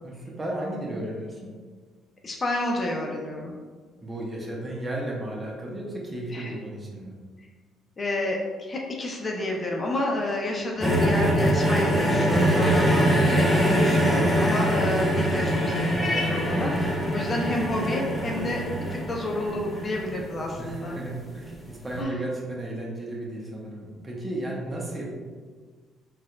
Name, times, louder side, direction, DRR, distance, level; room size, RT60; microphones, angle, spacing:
voice 1, 0.0-1.5 4.0-7.1 20.6-25.1, right 1 dB, 20° right, -3 dB, 0.9 m, -34 dB
voice 2, 2.2-3.5 6.3-6.5 8.0-18.6 18.9-21.0 22.0-22.2, left 1 dB, 35° left, -1 dB, 0.6 m, -30 dB
sound 1, 10.8-21.0 21.9-22.0, equal, 5° left, 0.8 m, -23 dB
4.1 x 2.5 x 2.3 m, 1.5 s
supercardioid pair, 65°, 0 cm